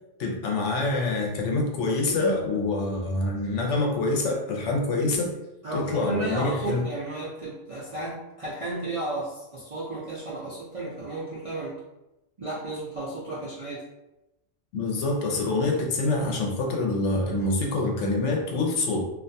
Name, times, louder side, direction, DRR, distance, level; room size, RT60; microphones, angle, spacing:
voice 1, 0.2-5.4 5.7-6.8 14.7-19.0, left 2 dB, 80° left, 0 dB, 0.9 m, -26 dB
voice 2, 5.6-11.8 12.4-13.8, right 2 dB, 50° right, -8 dB, 0.4 m, -33 dB
2.5 x 2.2 x 2.6 m, 0.93 s
omnidirectional pair, 1.2 m